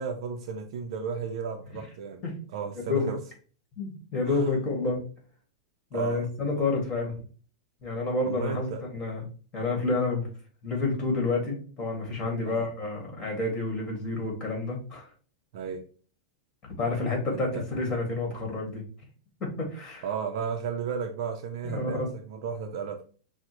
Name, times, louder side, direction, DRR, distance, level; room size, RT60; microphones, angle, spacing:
voice 1, 0.0-2.2 2.5-3.2 4.2-4.5 5.9-6.3 8.2-8.8 12.4-12.7 15.5-15.9 17.3-17.7 20.0-23.1, right 6 dB, 65° right, 0.5 m, -34 dB
voice 2, 3.8-5.0 5.9-7.2 7.8-9.2 9.5-10.3 10.6-15.1 16.8-18.8 19.4-20.0 21.6-22.1, left 3 dB, 25° left, 1.6 m, -29 dB
5.9 x 2.1 x 3.0 m
supercardioid pair, 140°, 3 cm